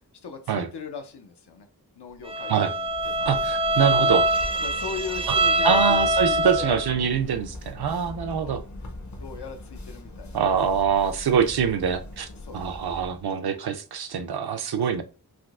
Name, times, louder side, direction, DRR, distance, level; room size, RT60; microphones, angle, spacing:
voice 1, 0.2-1.7 2.0-3.3 4.0-4.1 4.6-6.8 7.2-7.4 8.4-8.6 9.1-10.4 12.4-12.6 13.4-13.6, left 5 dB, 90° left, 7 dB, 0.6 m, -38 dB
Bowed string instrument, 2.3-6.9, right 1 dB, 15° right, 0.4 m, -24 dB
sound 1, 2.8-13.3, left 1 dB, 45° left, 0.6 m, -40 dB
voice 2, 3.3-4.2 5.3-5.4 5.6-8.6 10.3-12.3 12.5-15.0, right 7 dB, 75° right, 8 dB, 0.5 m, -24 dB
3.5 x 2.6 x 2.4 m, 0.35 s
wide cardioid pair, 50°, 39 cm